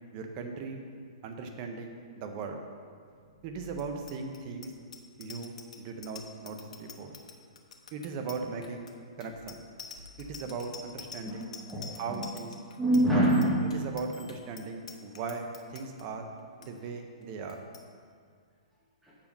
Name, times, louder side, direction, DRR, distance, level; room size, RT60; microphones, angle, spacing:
voice 1, 0.1-0.8 1.2-2.6 3.4-4.7 5.2-7.1 7.9-8.9 9.2-9.6 10.2-11.5 12.0-12.5 13.1-13.2 13.7-16.3 16.6-17.6, right 4 dB, 30° right, 4 dB, 0.7 m, -38 dB
Bicycle bell, 3.7-16.0 16.4-16.7 16.9-17.2 17.5-17.8, left 5 dB, 90° left, 0.8 m, -47 dB
voice 2, 11.3-12.3 12.8-13.6 19.0-19.1, right 1 dB, 5° right, -8 dB, 0.9 m, -26 dB
6.9 x 5.0 x 5.2 m, 2.1 s
hypercardioid pair, 160°, 3 cm